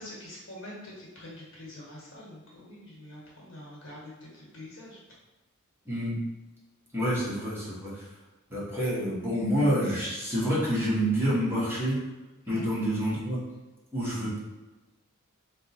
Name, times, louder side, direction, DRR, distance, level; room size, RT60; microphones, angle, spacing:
voice 1, 0.0-5.0 12.4-12.7, left 1 dB, 60° left, -4 dB, 1.0 m, -45 dB
voice 2, 5.9-6.2 6.9-8.1 8.5-12.0 12.5-13.4 13.9-14.4, equal, 10° right, -8 dB, 0.8 m, -28 dB
2.5 x 2.1 x 3.9 m, 1.1 s
head